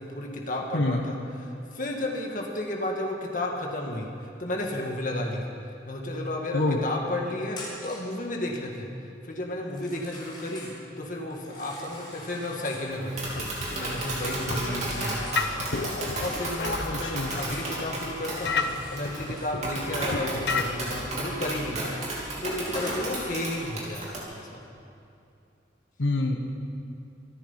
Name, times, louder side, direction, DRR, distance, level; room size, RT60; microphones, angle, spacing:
voice 1, 0.0-5.4 5.9-8.9 9.2-24.6, left 1 dB, 45° left, 0 dB, 2.0 m, -33 dB
Telephone, 7.5-8.1 9.6-10.8 11.3-12.9 13.3-17.7 18.0-19.6 21.7-21.8 22.4-23.1, left 1 dB, 25° left, 4.6 m, -43 dB
Tap, 12.9-24.2, right 1 dB, 35° right, 3.2 m, -33 dB
sound 1, 13.2-20.6, left 4 dB, 65° left, 0.8 m, -33 dB
voice 2, 16.9-17.3 26.0-26.4, left 2 dB, 90° left, 2 dB, 1.2 m, -26 dB
24.5 x 9.5 x 5.7 m, 2.6 s
head